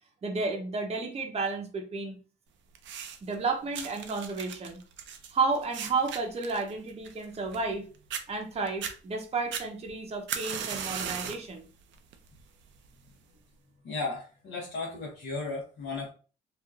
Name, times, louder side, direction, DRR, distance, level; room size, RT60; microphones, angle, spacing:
voice 1, 0.2-2.2 3.2-4.8 5.3-7.9 8.3-11.7, right 3 dB, 30° right, 2 dB, 0.7 m, -32 dB
sound 1, 2.7-3.3 3.7-7.8 8.1-8.2 8.7-8.9 9.5-11.5 11.9-12.3 13.1-13.2, right 8 dB, 70° right, 0.4 m, -37 dB
voice 2, 13.8-16.1, left 3 dB, 60° left, -5 dB, 1.0 m, -35 dB
2.9 x 2.4 x 2.4 m, 0.37 s
cardioid pair, 90°, 20 cm